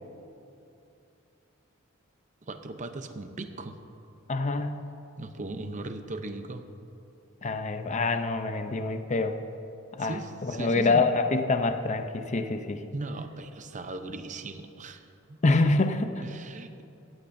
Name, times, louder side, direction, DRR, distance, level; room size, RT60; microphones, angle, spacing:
voice 1, 2.4-3.8 5.2-6.6 10.0-11.0 12.9-15.4 16.2-16.8, right 2 dB, 35° right, 8 dB, 0.7 m, -38 dB
voice 2, 4.3-4.8 7.4-9.4 9.9-10.1 10.4-12.8 15.4-16.2, left 3 dB, 35° left, 7 dB, 0.5 m, -26 dB
17.0 x 14.0 x 2.6 m, 2.7 s
head